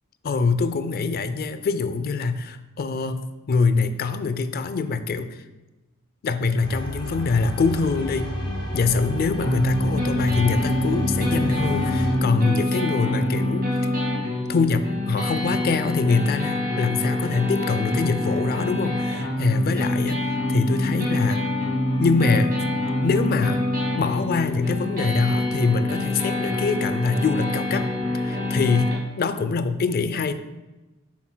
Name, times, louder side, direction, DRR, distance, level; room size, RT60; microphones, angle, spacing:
voice 1, 0.2-5.4 6.2-8.3 8.7-13.7 14.5-21.4 22.0-22.5 23.0-23.6 24.0-27.9 28.1-30.3, left 4 dB, 45° left, 11 dB, 0.4 m, -24 dB
sound 1, 6.6-12.1, equal, 25° left, 1.5 m, -30 dB
sound 2, 9.4-28.9, left 1 dB, 45° right, 1.9 m, -25 dB
7.9 x 6.0 x 2.2 m, 1.1 s
head